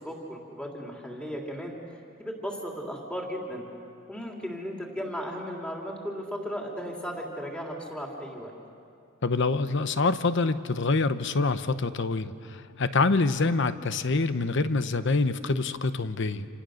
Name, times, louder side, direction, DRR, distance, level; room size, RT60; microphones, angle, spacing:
voice 1, 0.0-3.6 4.1-8.5, equal, 5° left, -1 dB, 3.1 m, -36 dB
voice 2, 9.2-16.5, left 3 dB, 60° left, 12 dB, 0.9 m, -26 dB
28.0 x 27.5 x 6.5 m, 2.5 s
head